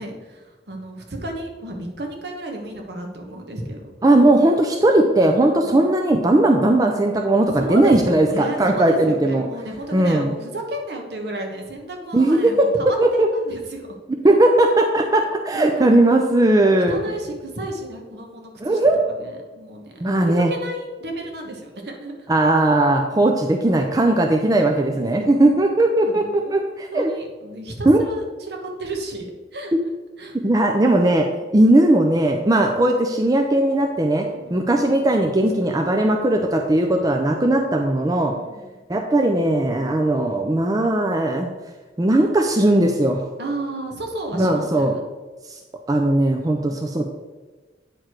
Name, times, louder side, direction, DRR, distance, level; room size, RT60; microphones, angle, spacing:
voice 1, 0.0-3.9 5.6-5.9 7.6-13.9 15.5-15.9 16.6-18.8 19.2-22.1 24.6-25.5 26.0-29.3 29.5-29.7 30.2-30.4 34.3-34.7 38.2-38.7 43.4-45.0 46.6-46.8, right 1 dB, 65° right, 1 dB, 1.3 m, -32 dB
voice 2, 4.0-9.5 9.9-10.3 12.1-13.3 14.2-17.0 18.6-19.0 20.0-20.5 22.3-27.1 27.8-28.0 30.4-31.3 31.5-38.3 38.9-41.5 42.0-43.2 44.3-44.9 45.5-45.6 45.9-47.1, right 1 dB, 20° right, 3 dB, 0.5 m, -18 dB
8.9 x 4.8 x 4.5 m, 1.3 s
head